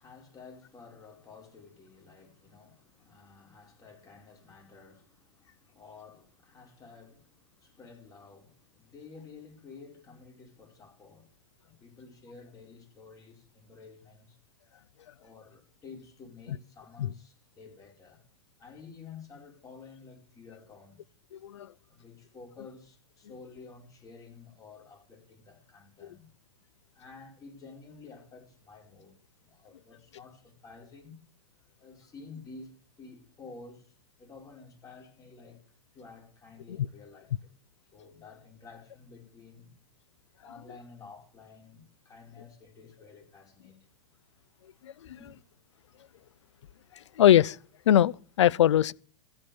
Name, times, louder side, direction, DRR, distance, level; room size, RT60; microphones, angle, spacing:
voice 1, 0.0-11.3 11.6-14.4 15.2-18.2 18.6-21.0 21.8-26.3 26.9-31.2 31.8-35.6 35.9-37.5 37.9-39.7 40.4-43.9 45.0-45.3, left 4 dB, 25° left, 5.2 m, -51 dB
voice 2, 21.3-21.7 44.8-45.2 46.9-47.6 47.9-48.9, left 11 dB, 80° left, 0.5 m, -22 dB
15.0 x 8.7 x 7.1 m
hypercardioid pair, 115°, 15 cm